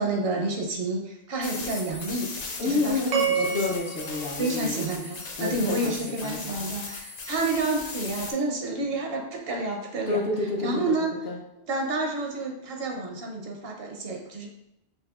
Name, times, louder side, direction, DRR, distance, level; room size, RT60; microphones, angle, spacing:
voice 1, 0.0-2.3 2.7-3.4 4.4-10.2 10.6-11.1 11.7-14.5, right 2 dB, 75° right, 1 dB, 0.9 m, -29 dB
sound 1, 1.4-8.3, left 3 dB, 50° left, 0.6 m, -38 dB
voice 2, 2.6-4.8 5.4-6.0 6.2-6.7 10.1-10.8 11.2-11.4, left 3 dB, 70° left, -1 dB, 0.9 m, -29 dB
sound 2, 3.1-5.5, right 6 dB, 55° right, 0.6 m, -30 dB
5.5 x 2.3 x 2.3 m, 0.85 s
omnidirectional pair, 1.0 m